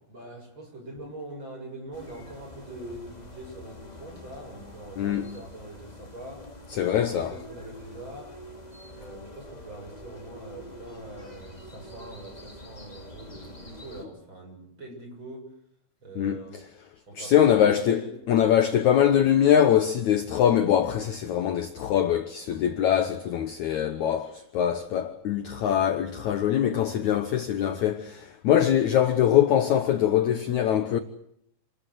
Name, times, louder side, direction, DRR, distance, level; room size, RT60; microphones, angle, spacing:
voice 1, 0.1-6.5 6.8-8.4 9.0-15.5 16.0-16.6 17.1-18.1, right 1 dB, 30° right, 7.7 m, -43 dB
sound 1, 1.9-14.0, left 1 dB, 10° left, 2.4 m, -46 dB
voice 2, 6.7-7.3 16.2-16.4 17.2-31.0, left 10 dB, 65° left, 2.0 m, -23 dB
28.5 x 20.5 x 8.0 m
omnidirectional pair, 4.4 m